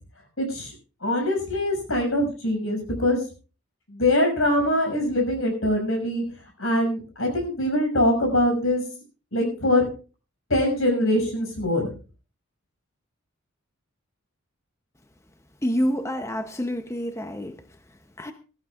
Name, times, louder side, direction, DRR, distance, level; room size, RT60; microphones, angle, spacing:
voice 1, 0.4-0.7 1.0-3.2 3.9-6.2 6.6-8.8 9.3-9.9 10.5-11.9, left 1 dB, 70° left, 6.3 m, -23 dB
voice 2, 15.6-17.6 18.2-18.3, equal, 15° left, 0.7 m, -27 dB
20.5 x 14.0 x 2.4 m
head